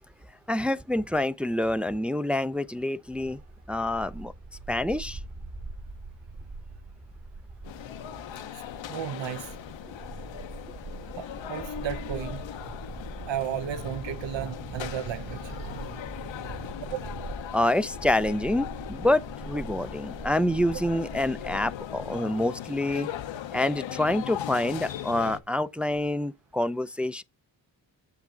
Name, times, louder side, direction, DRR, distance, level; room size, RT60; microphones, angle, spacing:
voice 1, 0.5-3.4 3.7-4.3 4.7-5.2 17.5-23.1 23.5-27.2, left 1 dB, 5° right, 0.4 m, -27 dB
Bark, 3.0-22.2, right 3 dB, 35° right, 1.7 m, -43 dB
sound 1, 7.6-25.4, left 11 dB, 70° left, 0.7 m, -39 dB
voice 2, 8.9-9.5 11.2-12.4 13.3-16.4 16.9-17.1, right 9 dB, 70° right, 0.9 m, -34 dB
7.4 x 6.0 x 3.8 m
supercardioid pair, 50°, 46 cm